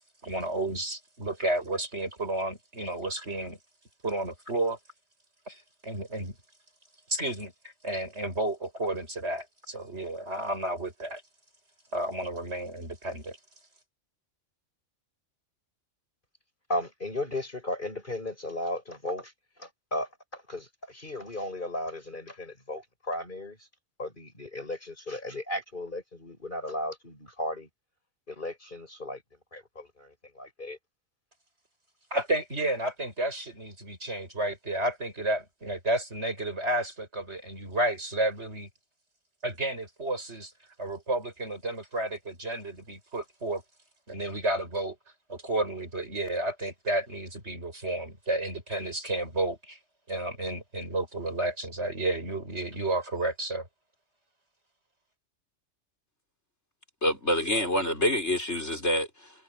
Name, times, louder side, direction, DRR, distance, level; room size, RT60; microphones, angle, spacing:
voice 1, 0.2-3.6 4.0-4.8 5.5-6.4 7.1-11.2 11.9-13.4 32.1-38.7 39.4-40.5 40.8-43.6 44.1-45.0 45.3-49.8 50.1-53.7, right 1 dB, 60° right, 7.8 m, -31 dB
voice 2, 16.7-23.7 24.0-27.7 28.3-29.2 29.5-30.8, left 1 dB, 40° left, 7.0 m, -35 dB
voice 3, 57.0-59.3, left 1 dB, 60° left, 6.9 m, -27 dB
omnidirectional pair, 1.3 m